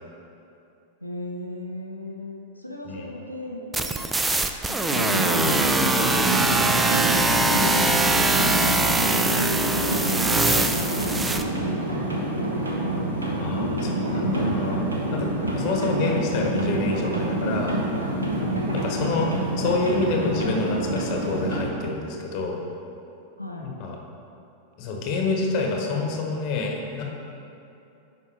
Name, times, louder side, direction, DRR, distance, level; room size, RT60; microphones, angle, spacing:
voice 1, 1.0-4.0 4.7-5.7 5.9-8.1 8.9-13.0 19.1-19.6 23.4-23.8, left 1 dB, 90° left, -1 dB, 0.6 m, -38 dB
sound 1, 3.7-11.4, right 2 dB, 10° right, 0.4 m, -22 dB
sound 2, 4.9-21.7, right 1 dB, 75° right, 1.0 m, -26 dB
voice 2, 13.4-14.8 15.1-17.8 18.7-19.3 19.6-22.6 23.6-24.0 24.8-27.0, left 3 dB, 45° left, 1 dB, 1.0 m, -28 dB
9.7 x 5.1 x 3.3 m, 2.7 s
figure-of-eight pair, 90°, 0 cm